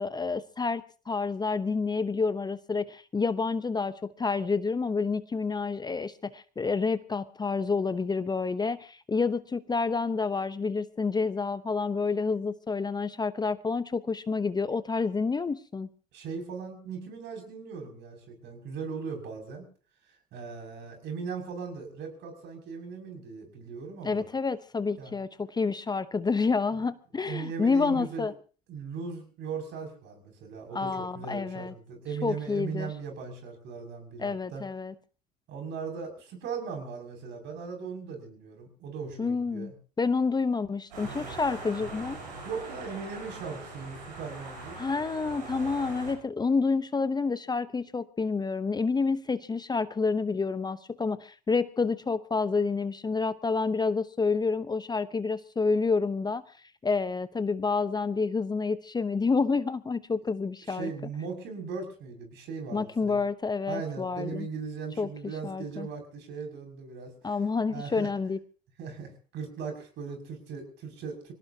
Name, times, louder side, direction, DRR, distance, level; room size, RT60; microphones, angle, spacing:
voice 1, 0.0-15.9 24.0-28.3 30.7-31.7 32.2-32.9 34.2-34.9 39.2-39.7 40.0-42.2 44.8-56.4 56.8-60.9 62.7-64.5 65.0-65.1 65.4-65.9 67.2-68.4, left 4 dB, 20° left, 13 dB, 0.9 m, -29 dB
voice 2, 16.1-19.6 20.3-24.3 25.0-25.1 26.7-26.8 27.2-28.3 28.7-34.6 35.5-39.7 42.4-44.8 60.6-63.2 63.7-67.3 67.7-68.1 68.8-71.3, right 5 dB, 55° right, 4 dB, 6.6 m, -38 dB
sound 1, 40.9-46.1, right 3 dB, 85° right, 7.9 m, -41 dB
25.5 x 18.0 x 2.9 m, 0.38 s
hypercardioid pair, 75°, 21 cm